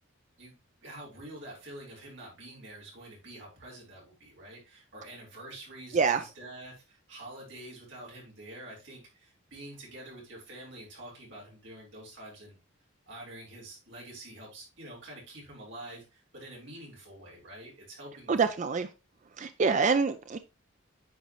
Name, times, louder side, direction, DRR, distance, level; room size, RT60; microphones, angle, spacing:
voice 1, 0.8-12.6 13.1-18.5, right 1 dB, 55° right, 4.2 m, -47 dB
voice 2, 18.3-18.9 19.4-20.4, right 5 dB, 35° right, 0.3 m, -26 dB
9.4 x 5.1 x 3.0 m
head